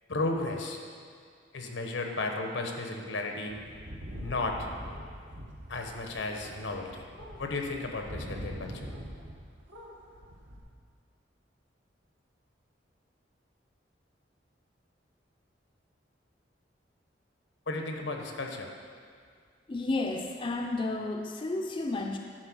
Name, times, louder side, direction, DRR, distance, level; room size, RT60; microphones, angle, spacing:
voice 1, 0.1-0.8 1.5-3.5 4.1-4.7 5.7-7.0 7.4-8.9 17.7-18.7, left 2 dB, 85° left, 3 dB, 1.0 m, -34 dB
sound 1, 3.5-9.4 9.7-10.6, equal, 80° right, 1.3 m, -43 dB
voice 2, 19.7-22.2, left 2 dB, 25° left, 3 dB, 0.4 m, -32 dB
10.5 x 4.3 x 6.2 m, 2.1 s
head